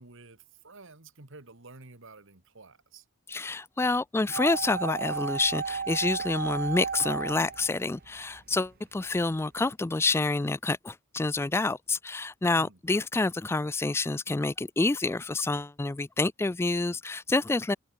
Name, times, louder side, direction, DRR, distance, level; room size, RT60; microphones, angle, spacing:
voice 1, 0.0-3.0 12.6-12.8, right 3 dB, 65° right, 2.2 m, -50 dB
voice 2, 3.3-17.8, left 3 dB, 10° left, 0.3 m, -28 dB
sound 1, 4.3-8.4 8.7-8.8, right 5 dB, 45° right, 1.0 m, -33 dB
head